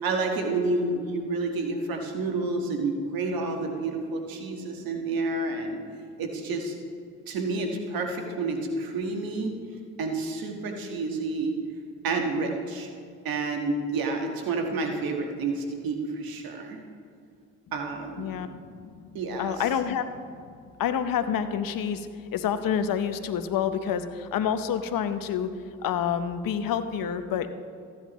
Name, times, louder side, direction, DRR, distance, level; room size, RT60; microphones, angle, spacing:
voice 1, 0.0-5.8 6.2-6.7 7.3-9.5 10.0-11.6 12.0-12.9 13.2-16.8 17.7-18.3 19.1-19.6, right 3 dB, 75° right, 3 dB, 1.5 m, -29 dB
voice 2, 18.2-19.1 19.4-20.0 20.8-25.5 25.8-27.5, left 8 dB, 70° left, 10 dB, 0.8 m, -28 dB
15.0 x 9.8 x 3.1 m, 2.2 s
supercardioid pair, 50°, 35 cm